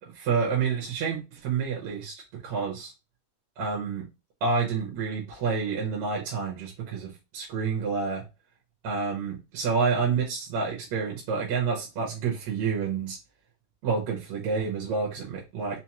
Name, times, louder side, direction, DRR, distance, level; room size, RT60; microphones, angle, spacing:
voice 1, 0.0-2.9 3.6-4.1 4.4-8.2 8.8-13.2 13.8-15.8, right 5 dB, 65° right, 2.0 m, -29 dB
5.7 x 2.0 x 2.9 m
omnidirectional pair, 3.7 m